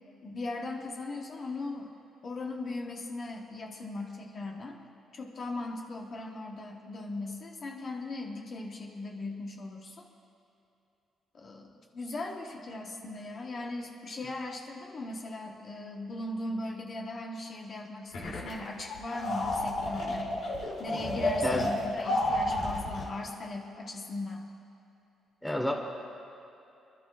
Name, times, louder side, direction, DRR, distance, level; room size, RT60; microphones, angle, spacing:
voice 1, 0.2-1.9 2.2-4.8 5.1-10.1 11.3-20.4 20.8-24.5, left 2 dB, 45° left, 0 dB, 1.2 m, -38 dB
sound 1, 18.1-18.5 18.8-23.1, left 1 dB, 70° left, 2.9 m, -31 dB
voice 2, 25.4-25.7, left 1 dB, 5° left, 1 dB, 1.4 m, -29 dB
27.0 x 11.5 x 2.5 m, 2.8 s
cardioid pair, 90°, 0 cm